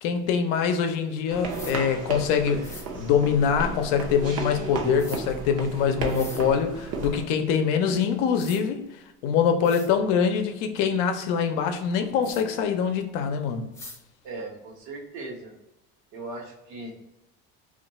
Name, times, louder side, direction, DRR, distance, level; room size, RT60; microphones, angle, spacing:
voice 1, 0.0-8.9 9.2-13.7, left 7 dB, 75° left, 0.6 m, -24 dB
sound 1, 1.3-7.2, right 4 dB, 50° right, 0.7 m, -33 dB
sound 2, 1.5-1.8 2.6-2.9 5.0-5.2 6.0-6.4 7.9-8.0 8.4-8.6 9.3-9.4 9.6-9.9 12.2-12.4 13.7-14.0, left 2 dB, 10° left, 0.5 m, -43 dB
voice 2, 14.2-15.5 16.1-17.1, right 2 dB, 75° right, 1.1 m, -38 dB
2.4 x 2.2 x 3.9 m
supercardioid pair, 110°, 31 cm